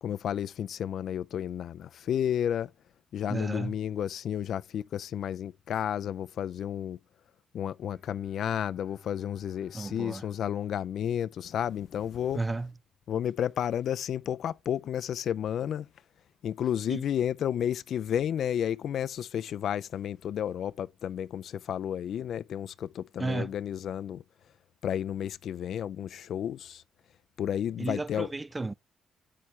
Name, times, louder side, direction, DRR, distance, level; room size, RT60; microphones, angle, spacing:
voice 1, 0.0-2.7 3.1-7.0 7.5-12.4 13.1-15.9 16.4-24.2 24.8-26.8 27.4-28.3, left 9 dB, 65° left, 0.4 m, -32 dB
voice 2, 3.3-3.7 9.7-10.2 12.3-12.7 16.9-17.0 23.2-23.5 27.8-28.7, right 3 dB, 20° right, 0.4 m, -33 dB
Bowed string instrument, 7.8-12.3, left 3 dB, ahead, 1.5 m, -57 dB
8.4 x 6.2 x 3.2 m
cardioid pair, 90°, 0 cm